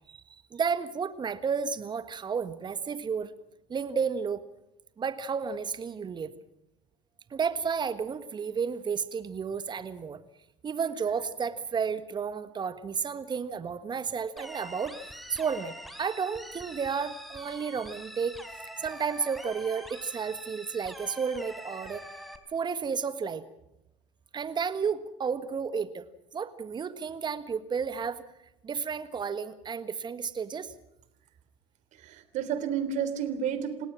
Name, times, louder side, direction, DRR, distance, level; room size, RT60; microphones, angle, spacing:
voice 1, 0.5-3.3 3.7-4.4 5.0-6.3 7.3-10.2 10.6-18.4 18.8-22.0 22.5-23.4 24.3-26.0 26.3-28.2 28.6-30.7, right 6 dB, 30° right, 12 dB, 1.5 m, -32 dB
sound 1, 14.4-22.4, equal, ahead, 3.9 m, -44 dB
voice 2, 32.0-33.9, right 8 dB, 55° right, 12 dB, 3.4 m, -31 dB
29.5 x 17.5 x 6.2 m, 0.87 s
hypercardioid pair, 70°, 15 cm